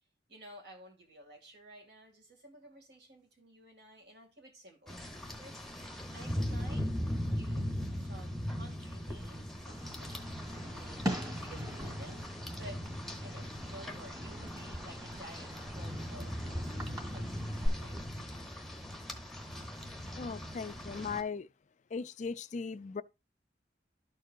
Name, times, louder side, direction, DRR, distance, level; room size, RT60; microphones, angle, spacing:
voice 1, 0.3-5.0 5.4-5.9 6.1-6.9 7.2-12.9 13.2-17.5 17.8-18.0, right 1 dB, 65° right, 2.3 m, -54 dB
Rain, 4.9-21.2, equal, ahead, 0.9 m, -39 dB
Fireworks, 9.7-17.7, equal, 20° right, 2.1 m, -42 dB
voice 2, 20.2-21.5 21.9-23.0, left 5 dB, 40° left, 0.4 m, -38 dB
12.5 x 4.6 x 2.5 m
head